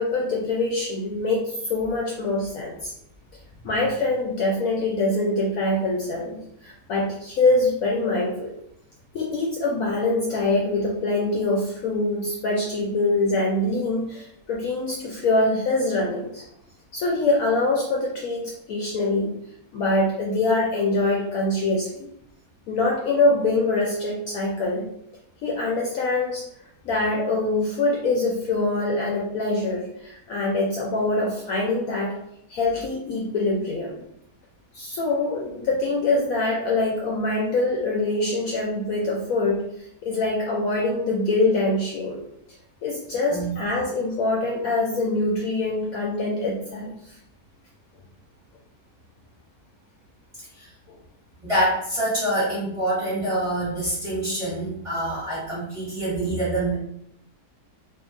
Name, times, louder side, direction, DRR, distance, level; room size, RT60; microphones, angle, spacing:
voice 1, 0.0-2.9 3.6-8.5 9.1-16.4 16.9-19.3 19.7-22.1 22.7-24.9 25.4-26.4 26.8-32.1 32.5-34.0 34.7-42.2 42.8-47.2 50.9-51.0, left 2 dB, 70° left, -3 dB, 0.9 m, -24 dB
voice 2, 51.4-56.7, right 1 dB, 25° right, -9 dB, 0.9 m, -26 dB
2.7 x 2.5 x 2.5 m, 0.74 s
omnidirectional pair, 1.8 m